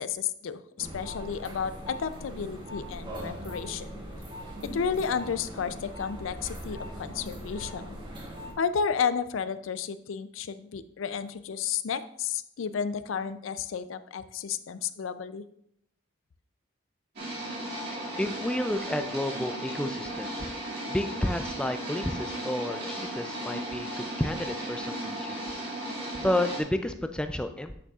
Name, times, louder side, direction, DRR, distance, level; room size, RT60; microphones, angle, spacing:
voice 1, 0.0-4.0 4.7-7.8 8.6-15.4, left 6 dB, 80° left, 13 dB, 0.4 m, -32 dB
sound 1, 0.8-8.5, equal, 25° right, 1.1 m, -40 dB
sound 2, 17.2-26.6, right 1 dB, 50° right, 2.2 m, -35 dB
voice 2, 18.2-20.5 20.9-25.6 26.1-27.8, left 1 dB, 5° left, 8 dB, 0.3 m, -31 dB
8.4 x 6.9 x 2.4 m, 0.74 s
head